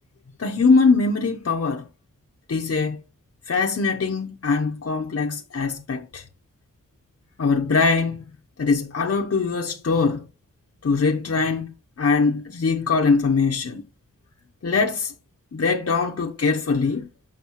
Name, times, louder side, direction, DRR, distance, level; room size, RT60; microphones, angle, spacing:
voice 1, 0.4-1.9 2.5-3.0 3.5-6.2 7.4-8.2 8.6-10.2 10.8-13.8 14.6-15.1 15.5-17.1, left 4 dB, 50° left, 0.8 m, -22 dB
7.2 x 5.5 x 3.0 m
wide cardioid pair, 70°, 31 cm